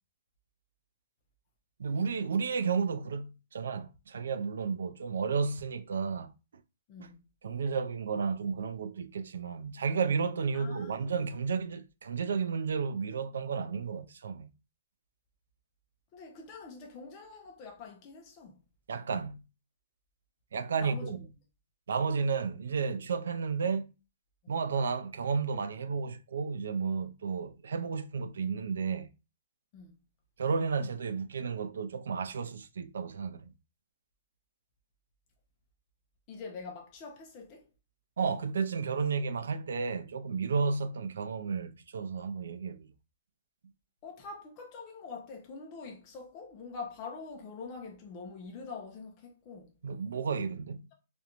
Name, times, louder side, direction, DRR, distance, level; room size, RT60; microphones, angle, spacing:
voice 1, 1.8-6.3 7.4-14.5 18.9-19.4 20.5-21.2 21.9-23.9 24.5-29.1 30.4-33.5 38.2-42.9 49.8-50.9, right 5 dB, 85° right, 0.3 m, -32 dB
voice 2, 6.9-7.2 10.5-11.1 16.1-18.6 20.7-21.2 24.4-24.5 29.7-30.0 36.3-37.7 44.0-49.7, left 4 dB, 25° left, 0.4 m, -45 dB
2.5 x 2.1 x 2.8 m
hypercardioid pair, 170°, 0 cm